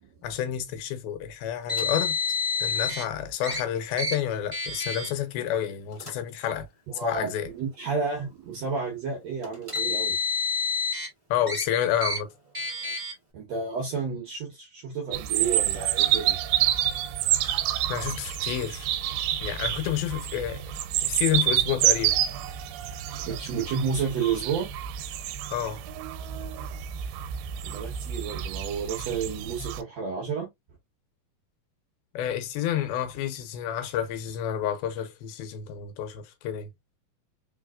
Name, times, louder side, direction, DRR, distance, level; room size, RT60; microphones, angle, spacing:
voice 1, 0.2-2.2 2.6-6.7 6.9-7.5 11.3-12.3 17.3-17.6 17.9-18.9 19.4-20.7 21.0-22.1 25.5-25.8 32.1-36.7, left 10 dB, 80° left, 2.6 m, -29 dB
Car, 1.7-3.0 3.4-3.6 4.0-4.1 4.5-5.1 5.9-6.1 7.1-7.2 9.4-11.1 11.5-11.6 12.0-12.2 12.5-13.1, left 4 dB, 15° right, 1.2 m, -28 dB
voice 2, 6.9-10.2 13.3-16.4 23.1-24.7 27.6-30.5, right 5 dB, 65° right, 1.7 m, -31 dB
sound 1, 15.1-29.8, right 12 dB, 90° right, 2.6 m, -28 dB
4.9 x 4.0 x 2.3 m
omnidirectional pair, 4.4 m